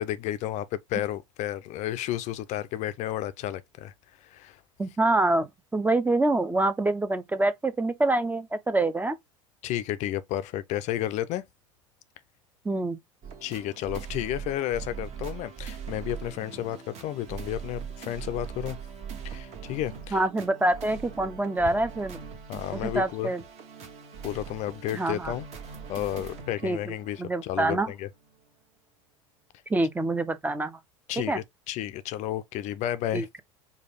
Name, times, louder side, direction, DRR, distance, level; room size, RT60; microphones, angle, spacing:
voice 1, 0.0-3.9 4.2-4.6 9.6-11.4 13.4-18.8 19.2-20.2 22.5-23.3 24.2-25.5 25.9-28.1 31.1-33.3, left 13 dB, 45° left, 0.4 m, -32 dB
voice 2, 4.8-9.1 12.6-13.0 20.1-22.2 22.7-23.4 24.9-25.3 26.6-27.9 29.7-30.8 31.2-31.4 33.1-33.2, right 2 dB, 10° right, 0.5 m, -26 dB
sound 1, 13.2-27.7 28.2-28.4, right 7 dB, 40° right, 1.3 m, -41 dB
4.8 x 2.3 x 3.4 m
hypercardioid pair, 75°, 17 cm